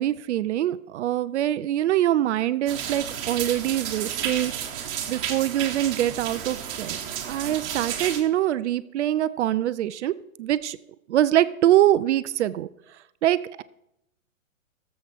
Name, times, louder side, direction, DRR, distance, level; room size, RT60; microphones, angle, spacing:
voice 1, 0.0-4.5 5.1-7.0 7.3-10.1 10.4-10.8 11.1-12.7 13.2-13.6, right 12 dB, 55° right, 15 dB, 0.5 m, -24 dB
sound 1, 2.7-8.2, right 9 dB, 40° right, 1.6 m, -32 dB
18.0 x 7.4 x 3.6 m, 0.82 s
hypercardioid pair, 145°, 42 cm